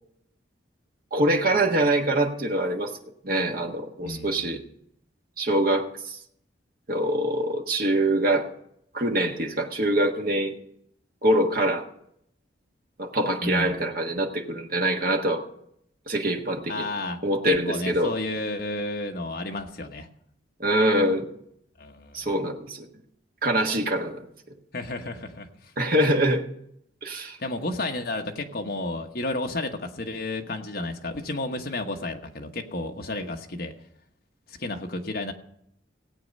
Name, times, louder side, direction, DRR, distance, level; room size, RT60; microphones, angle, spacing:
voice 1, 1.1-2.9 3.2-4.6 5.4-6.2 6.9-8.5 8.9-10.5 11.2-11.8 13.0-15.4 16.1-16.9 17.2-18.1 20.6-21.3 22.1-22.9 23.4-24.2 25.8-26.4 27.0-27.4, right 1 dB, 45° right, 2 dB, 1.5 m, -24 dB
voice 2, 4.0-4.6 13.4-13.8 16.7-17.2 17.4-20.1 21.8-22.3 24.7-25.7 27.4-33.7 34.5-35.3, left 2 dB, 50° left, 3 dB, 1.2 m, -32 dB
16.5 x 8.5 x 5.4 m, 0.74 s
head